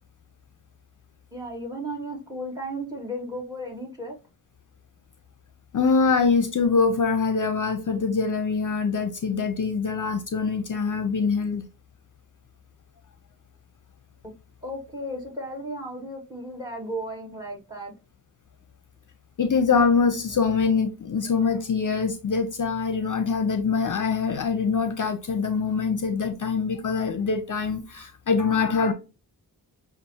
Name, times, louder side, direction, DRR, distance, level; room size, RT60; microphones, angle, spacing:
voice 1, 1.3-4.1 14.2-14.3 14.6-17.9, right 1 dB, 10° right, 2.1 m, -34 dB
voice 2, 5.7-11.7 19.4-28.9, left 5 dB, 55° left, 0.6 m, -24 dB
6.6 x 2.5 x 2.9 m
wide cardioid pair, 70°, 38 cm